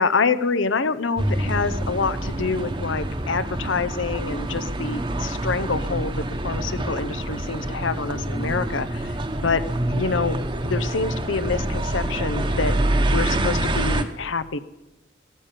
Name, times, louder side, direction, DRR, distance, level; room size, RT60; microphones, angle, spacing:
voice 1, 0.0-9.6 9.9-10.4 10.6-12.7 13.1-14.6, left 4 dB, 85° left, 14 dB, 0.8 m, -26 dB
sound 1, 1.2-14.0, right 1 dB, 25° right, 1.0 m, -26 dB
15.5 x 12.0 x 7.5 m, 0.99 s
head